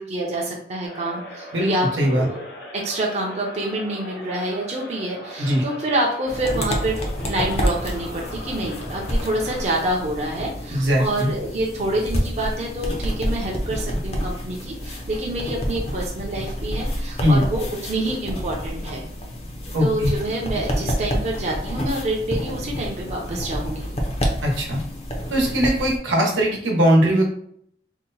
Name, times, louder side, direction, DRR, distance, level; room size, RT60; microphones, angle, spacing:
voice 1, 0.0-2.5 2.7-19.0 19.8-23.9, right 1 dB, 35° right, -1 dB, 0.6 m, -27 dB
sound 1, 0.8-10.0, left 1 dB, 65° left, 0.8 m, -39 dB
voice 2, 1.5-2.3 5.4-5.6 10.7-11.3 17.2-17.4 19.7-20.1 24.4-24.8 25.3-27.2, equal, 90° right, -1 dB, 1.0 m, -20 dB
sound 2, 6.3-26.0, equal, 35° left, 0.6 m, -28 dB
2.8 x 2.1 x 3.9 m, 0.67 s
head